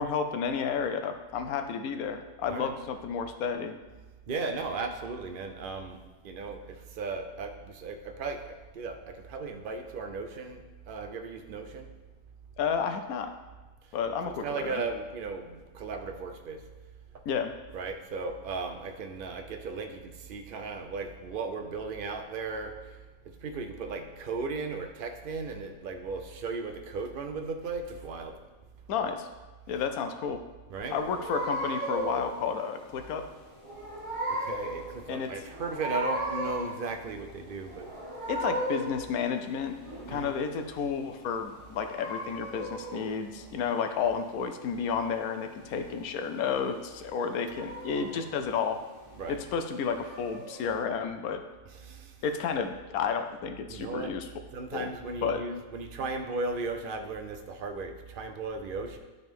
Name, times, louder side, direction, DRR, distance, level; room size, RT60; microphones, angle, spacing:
voice 1, 0.0-3.8 12.6-13.3 13.9-14.8 17.3-17.5 28.9-29.3 29.7-30.4 30.9-33.2 35.1-35.3 38.3-39.8 40.1-48.8 49.3-51.4 52.2-54.3 54.7-54.9 55.2-55.4, left 6 dB, 85° left, 7 dB, 1.1 m, -31 dB
voice 2, 4.3-6.0 6.2-8.4 8.7-11.9 14.4-16.6 17.7-22.7 23.4-28.3 30.7-31.0 34.3-37.9 40.1-40.4 48.1-48.2 49.1-49.4 51.7-52.1 53.7-54.1 54.5-59.0, right 4 dB, 50° right, 5 dB, 0.7 m, -36 dB
sound 1, 30.8-50.8, right 1 dB, 20° right, 1.6 m, -37 dB
11.5 x 4.0 x 3.6 m, 1.2 s
omnidirectional pair, 1.5 m